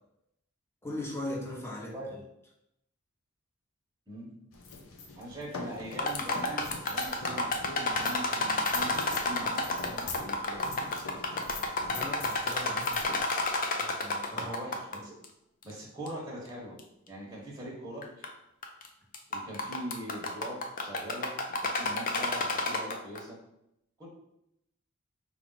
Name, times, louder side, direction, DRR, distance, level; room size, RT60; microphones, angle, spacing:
voice 1, 0.8-2.2 11.9-13.2 13.8-14.5 15.0-15.1, left 1 dB, 10° left, -3 dB, 0.9 m, -39 dB
sound 1, 4.5-14.5, left 3 dB, 90° left, 0.7 m, -43 dB
voice 2, 5.1-10.9 14.4-15.1 15.6-16.8 17.1-18.3 19.3-23.4 24.0-24.1, right 1 dB, 15° right, -4 dB, 1.0 m, -42 dB
sound 2, 5.9-15.0 15.2-15.3 16.1-16.2 16.8-16.9 18.0-18.3 18.6-18.9 19.1-23.2, left 2 dB, 40° left, 0.5 m, -30 dB
4.7 x 2.4 x 3.8 m, 0.80 s
head